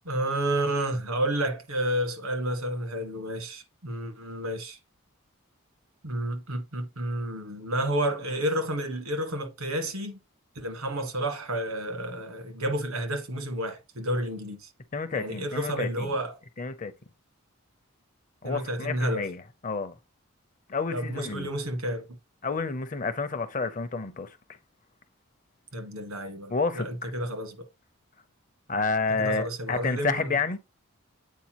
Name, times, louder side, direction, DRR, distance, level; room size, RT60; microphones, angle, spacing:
voice 1, 0.0-4.8 6.0-10.2 10.5-14.7 15.1-16.4 18.4-19.3 20.9-22.0 25.7-27.6 29.2-30.3, right 1 dB, 85° right, 1.6 m, -30 dB
voice 2, 14.9-16.1 16.6-16.9 18.4-19.9 20.7-21.5 22.4-24.3 26.5-27.1 28.7-30.6, left 4 dB, 35° left, 0.5 m, -30 dB
8.3 x 4.6 x 2.9 m
head